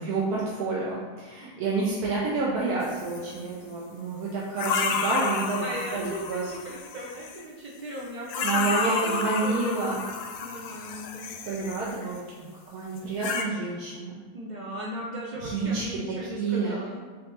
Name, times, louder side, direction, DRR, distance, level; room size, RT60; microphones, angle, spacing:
voice 1, 0.0-5.6 5.9-6.5 8.4-10.0 11.4-14.1 15.4-16.8, right 3 dB, 75° right, -5 dB, 1.2 m, -29 dB
sound 1, 2.8-3.4 4.6-7.4 8.2-12.2 13.0-13.4, left 5 dB, 90° left, 1.1 m, -31 dB
voice 2, 5.6-9.6 9.8-10.0 10.4-11.4 14.3-17.0, right 1 dB, 55° right, -5 dB, 0.5 m, -37 dB
4.4 x 2.6 x 4.1 m, 1.5 s
omnidirectional pair, 1.7 m